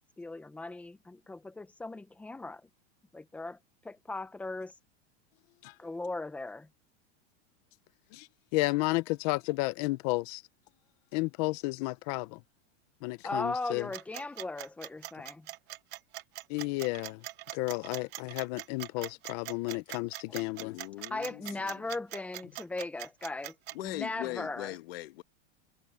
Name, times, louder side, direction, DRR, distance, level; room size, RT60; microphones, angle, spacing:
voice 1, 0.0-2.6 3.1-3.6 3.8-4.7 5.8-6.7 13.2-15.5 19.0-19.1 20.3-20.4 21.1-23.6 23.8-24.8, left 2 dB, 5° left, 0.8 m, -38 dB
voice 2, 8.5-10.4 11.1-12.4 13.0-13.9 16.5-17.2 17.5-20.8, left 22 dB, 35° left, 0.7 m, -32 dB
sound 1, 13.9-23.9, right 17 dB, 30° right, 1.1 m, -42 dB
voice 3, 20.6-21.9 23.7-25.2, left 18 dB, 60° left, 1.6 m, -40 dB
supercardioid pair, 170°, 33 cm